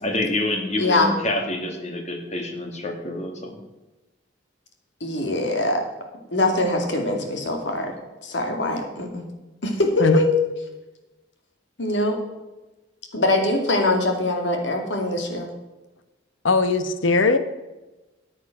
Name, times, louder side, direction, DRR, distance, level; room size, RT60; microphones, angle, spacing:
voice 1, 0.0-3.6, left 1 dB, 35° left, 3 dB, 2.3 m, -27 dB
voice 2, 0.8-1.1 5.0-5.8 6.3-7.9 8.2-9.3 9.6-10.3 11.8-12.2 13.1-15.5, left 2 dB, 65° left, 3 dB, 2.6 m, -23 dB
voice 3, 16.4-17.4, left 3 dB, 90° left, 10 dB, 1.1 m, -19 dB
14.0 x 8.5 x 6.0 m, 1.1 s
head